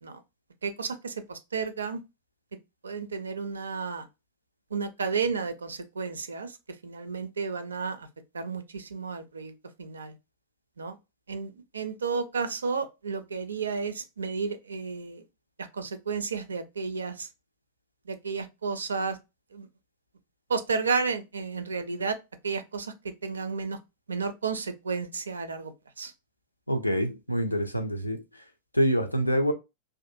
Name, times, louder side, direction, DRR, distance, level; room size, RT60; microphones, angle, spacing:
voice 1, 0.6-2.0 2.8-4.1 4.7-6.6 6.8-8.1 8.3-10.1 10.8-11.0 11.3-15.2 15.6-17.3 18.1-19.2 19.5-19.7 20.5-22.2 22.4-23.8 24.1-26.1, right 5 dB, 75° right, 0.4 m, -32 dB
voice 2, 26.7-28.2 28.7-29.5, equal, 85° left, 0.4 m, -26 dB
2.5 x 2.5 x 2.5 m
figure-of-eight pair, 90°, 0 cm